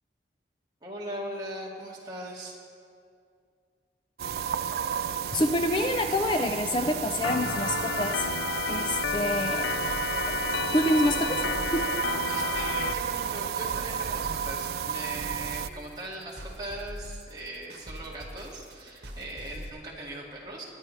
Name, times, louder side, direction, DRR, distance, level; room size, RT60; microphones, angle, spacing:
voice 1, 0.8-2.6 12.3-20.6, right 1 dB, 25° right, -4 dB, 2.0 m, -39 dB
sound 1, 4.2-15.7, right 7 dB, 60° right, 0.3 m, -32 dB
voice 2, 5.3-8.3 8.7-9.7 10.7-11.4 11.7-11.9, left 1 dB, 25° left, 6 dB, 0.4 m, -27 dB
Organ, 7.2-12.9, left 8 dB, 90° left, 0.4 m, -32 dB
sound 2, 9.0-19.7, equal, 75° right, 1.4 m, -43 dB
21.5 x 10.5 x 3.2 m, 2.3 s
head